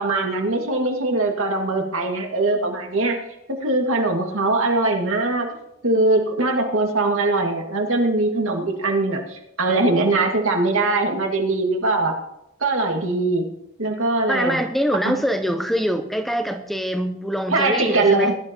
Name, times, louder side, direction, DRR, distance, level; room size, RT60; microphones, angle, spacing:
voice 1, 0.0-3.2 3.5-5.5 5.8-12.1 12.6-13.5 13.8-14.6 15.0-15.2 17.5-18.3, right 2 dB, 75° right, 2 dB, 2.0 m, -21 dB
voice 2, 14.3-18.4, equal, ahead, 6 dB, 0.6 m, -24 dB
19.5 x 11.5 x 3.0 m, 0.84 s
head